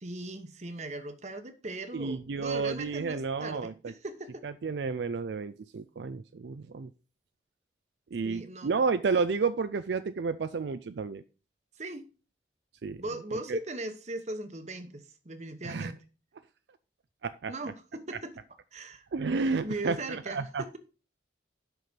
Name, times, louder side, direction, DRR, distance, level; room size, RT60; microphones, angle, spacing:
voice 1, 0.0-4.4 8.2-8.8 11.8-12.1 13.0-16.0 17.5-18.3 18.7-19.0 19.6-20.8, right 2 dB, 40° right, 1.0 m, -39 dB
voice 2, 1.9-3.9 4.4-6.9 8.1-11.2 12.8-13.0 13.5-13.6 15.6-15.9 17.2-17.5 19.1-20.8, right 4 dB, 75° right, 0.4 m, -31 dB
8.0 x 5.9 x 5.2 m
head